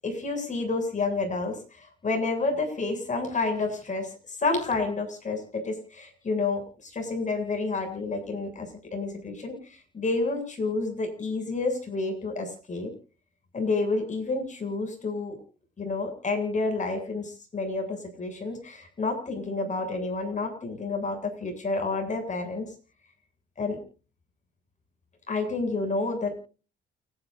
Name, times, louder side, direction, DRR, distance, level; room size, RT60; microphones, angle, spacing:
voice 1, 0.0-9.5 9.9-12.9 13.5-15.4 15.8-22.7 23.6-23.8 25.3-26.3, left 3 dB, 40° left, 4 dB, 7.7 m, -29 dB
29.5 x 11.0 x 2.7 m, 0.35 s
cardioid pair, 90°, 20 cm